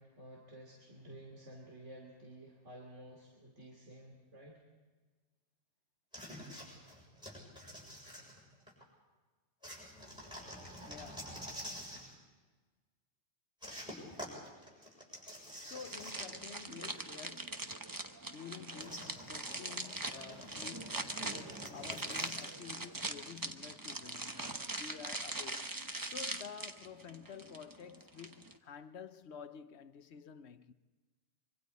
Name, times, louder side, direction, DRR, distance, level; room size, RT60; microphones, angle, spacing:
voice 1, 0.0-4.6, right 1 dB, 90° right, 3.2 m, -53 dB
sound 1, 6.1-8.8 9.6-12.1 13.6-16.5 16.8-16.9 18.8-22.6, equal, 5° right, 7.2 m, -48 dB
voice 2, 10.9-11.4 15.6-17.7 18.3-24.4 24.8-30.7, left 7 dB, 70° left, 1.0 m, -50 dB
sound 2, 15.9-28.6, right 2 dB, 20° right, 0.9 m, -42 dB
25.0 x 24.5 x 4.2 m
omnidirectional pair, 1.2 m